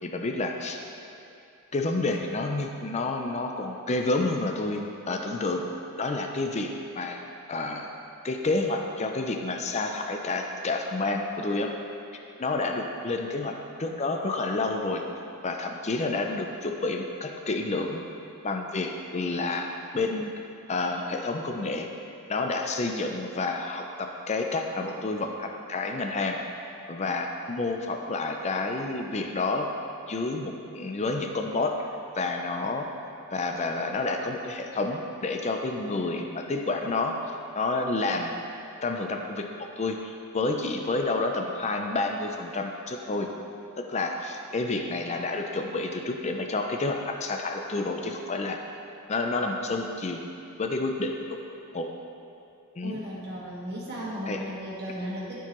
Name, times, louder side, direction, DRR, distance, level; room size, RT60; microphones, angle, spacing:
voice 1, 0.0-0.8 1.7-5.7 6.0-7.2 7.5-7.9 8.2-11.7 12.4-15.0 15.4-18.0 18.4-20.3 20.7-21.9 22.3-26.4 26.9-29.7 30.1-31.7 32.1-32.9 33.3-37.1 37.5-38.3 38.8-43.3 43.8-48.6 49.1-50.2 50.6-51.1 51.7-51.9 52.8-53.0 54.3-54.4, left 3 dB, 30° left, 3 dB, 0.5 m, -29 dB
voice 2, 52.8-55.4, equal, 45° right, -6 dB, 1.6 m, -35 dB
13.0 x 4.6 x 3.0 m, 2.6 s
head